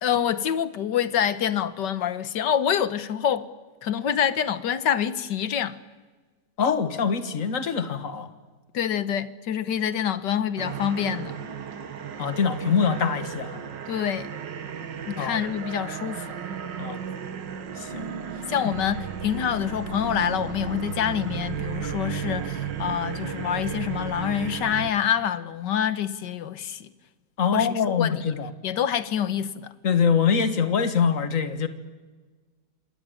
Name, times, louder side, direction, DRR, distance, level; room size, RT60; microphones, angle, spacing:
voice 1, 0.0-3.5 3.8-5.8 8.7-11.4 13.9-14.3 15.1-16.3 18.5-26.9 27.5-28.2 28.6-29.7, left 9 dB, 75° left, 1.8 m, -26 dB
voice 2, 6.6-8.3 12.2-13.6 15.2-15.4 16.8-17.0 17.8-18.0 27.4-28.5 29.8-31.7, left 6 dB, 50° left, 1.9 m, -24 dB
sound 1, 10.6-24.9, right 7 dB, 90° right, 2.2 m, -34 dB
27.5 x 20.0 x 9.2 m
omnidirectional pair, 1.9 m